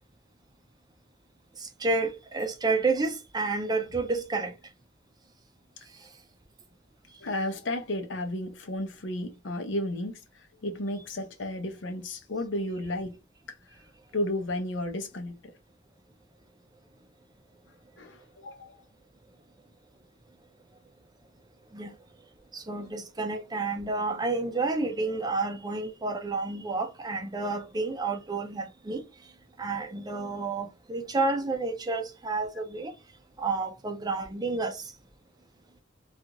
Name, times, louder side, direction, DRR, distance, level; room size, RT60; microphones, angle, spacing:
voice 1, 1.6-4.6 6.0-6.1 21.7-21.9 22.5-29.0 29.6-32.9 33.4-34.9, right 3 dB, 20° right, 0.5 m, -30 dB
voice 2, 7.2-13.2 14.1-15.5 18.0-18.8, left 1 dB, 75° left, 0.7 m, -33 dB
2.5 x 2.4 x 2.8 m
head